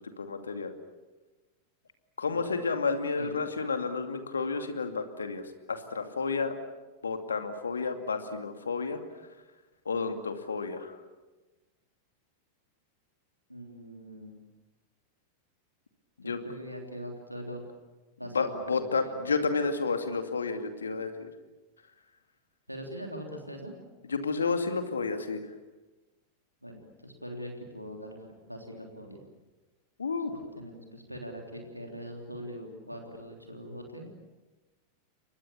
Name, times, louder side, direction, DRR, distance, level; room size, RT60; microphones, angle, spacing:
voice 1, 0.2-0.7 2.2-5.4 5.7-6.6 7.0-9.0 9.9-10.9 16.2-16.4 18.3-21.3 24.1-25.4 30.0-30.3, left 4 dB, 70° left, 7 dB, 2.4 m, -31 dB
voice 2, 13.5-14.4 16.2-17.6 18.2-19.2 22.7-23.7 26.6-29.2 30.6-34.1, equal, 90° right, 1 dB, 3.5 m, -42 dB
29.5 x 24.0 x 7.1 m, 1.2 s
figure-of-eight pair, 90°, 0 cm